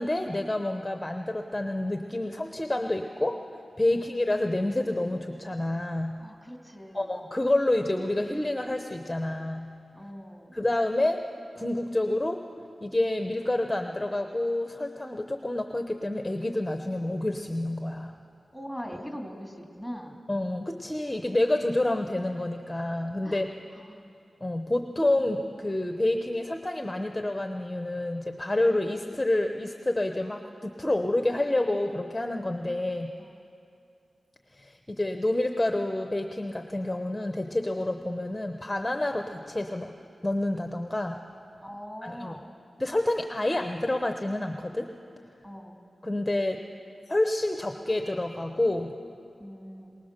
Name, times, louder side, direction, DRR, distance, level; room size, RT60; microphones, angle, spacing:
voice 1, 0.0-3.4 3.8-6.2 6.9-9.7 10.5-11.2 11.6-12.4 12.8-18.2 20.3-23.5 24.4-33.1 34.5-39.9 40.2-41.2 42.0-42.4 42.8-44.9 46.0-46.6 47.1-48.9, left 1 dB, 15° left, 5 dB, 0.8 m, -28 dB
voice 2, 6.2-7.1 9.9-10.6 18.5-20.2 23.2-23.4 23.7-24.2 33.2-33.3 41.6-42.5 45.4-45.8 49.4-50.0, equal, 10° right, 1 dB, 2.6 m, -41 dB
23.0 x 19.0 x 6.7 m, 2.6 s
wide cardioid pair, 115°, 0 cm